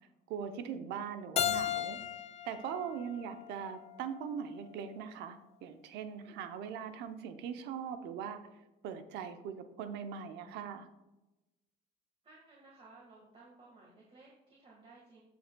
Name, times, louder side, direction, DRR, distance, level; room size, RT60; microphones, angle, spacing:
voice 1, 0.3-2.0 2.4-8.4 8.8-10.9, right 7 dB, 90° right, 8 dB, 0.7 m, -41 dB
Keyboard (musical), 1.4-4.2, left 10 dB, 40° left, 0.4 m, -36 dB
voice 2, 12.2-15.2, right 3 dB, 35° right, -3 dB, 1.7 m, -58 dB
14.5 x 5.2 x 2.3 m, 1.0 s
cardioid pair, 110°, 17 cm